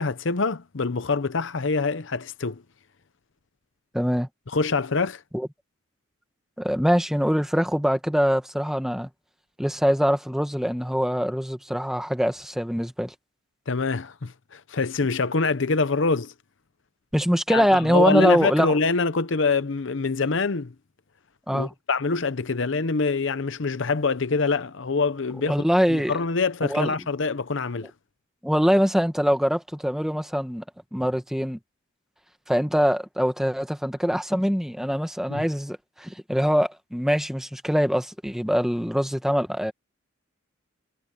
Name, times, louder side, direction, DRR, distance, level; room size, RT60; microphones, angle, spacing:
voice 1, 0.0-2.6 4.5-5.2 13.7-16.3 17.5-20.7 21.5-25.5 25.9-27.9 35.3-35.4, left 4 dB, 65° left, 0.7 m, -25 dB
voice 2, 3.9-4.3 5.3-5.5 6.6-9.1 9.6-13.1 17.1-18.8 21.5-21.7 25.5-26.2 26.7-26.9 28.4-30.6 30.9-31.6 32.5-39.7, equal, ahead, 1.4 m, -23 dB
head